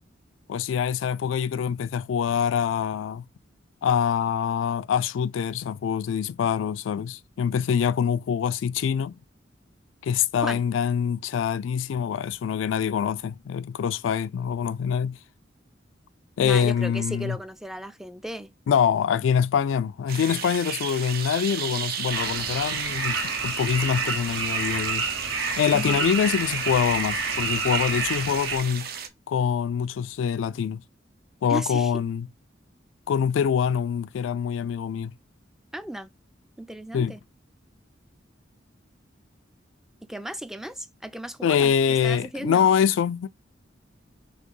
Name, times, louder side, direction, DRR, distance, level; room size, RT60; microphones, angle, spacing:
voice 1, 0.5-3.2 3.8-9.2 10.0-15.2 16.4-17.4 18.7-23.2 23.4-25.1 25.6-28.9 29.3-30.8 31.4-32.3 33.1-35.1 36.9-37.1 41.4-43.3, left 7 dB, 85° left, 0.3 m, -25 dB
voice 2, 16.4-18.5 25.7-26.1 31.5-31.9 35.7-36.1 36.6-37.2 40.0-42.7, right 1 dB, ahead, 0.3 m, -35 dB
sound 1, 20.1-29.1, right 8 dB, 55° right, 0.6 m, -34 dB
sound 2, 22.1-28.6, right 4 dB, 75° right, 1.3 m, -29 dB
4.2 x 3.0 x 3.0 m
head